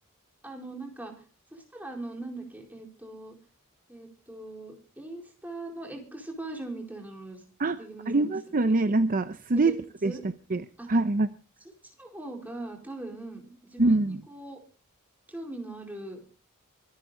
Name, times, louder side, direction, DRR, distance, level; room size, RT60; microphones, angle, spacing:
voice 1, 0.4-1.1 1.5-3.4 3.9-7.4 7.8-8.3 8.6-8.7 9.6-9.7 10.0-10.2 10.8-10.9 12.0-14.6 15.3-16.2, right 2 dB, 10° right, 1 dB, 4.2 m, -40 dB
voice 2, 8.1-9.8 10.0-10.1 10.5-11.3 13.8-14.2, right 2 dB, 40° right, 11 dB, 0.6 m, -24 dB
24.0 x 10.5 x 3.8 m, 0.37 s
head